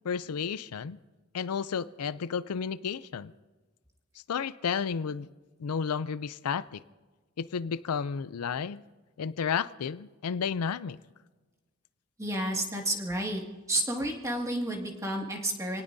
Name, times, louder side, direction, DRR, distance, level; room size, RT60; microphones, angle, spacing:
voice 1, 0.0-1.0 1.3-3.3 4.3-5.3 5.6-6.8 7.4-8.8 9.2-11.0, left 6 dB, 85° left, 15 dB, 0.5 m, -32 dB
voice 2, 12.2-13.4 13.7-15.8, right 1 dB, 15° right, 0 dB, 2.0 m, -31 dB
28.0 x 18.5 x 2.7 m, 1.3 s
head